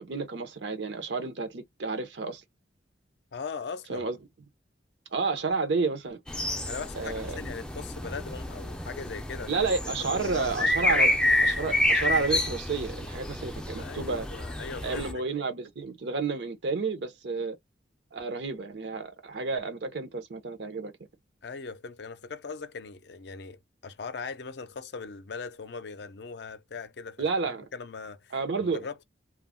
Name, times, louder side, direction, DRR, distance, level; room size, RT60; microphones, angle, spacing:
voice 1, 0.0-2.4 3.9-4.2 5.1-6.2 7.0-7.4 9.5-11.2 11.4-14.3 14.8-17.6 18.1-20.9 27.2-27.7 28.3-28.9, right 4 dB, 70° right, 0.6 m, -31 dB
voice 2, 3.3-4.1 6.6-9.5 10.0-10.5 10.8-11.0 13.8-15.2 21.4-28.3 28.6-29.0, left 5 dB, 60° left, 0.5 m, -40 dB
sound 1, 6.3-15.1, left 1 dB, 5° left, 0.4 m, -29 dB
2.3 x 2.0 x 3.5 m
head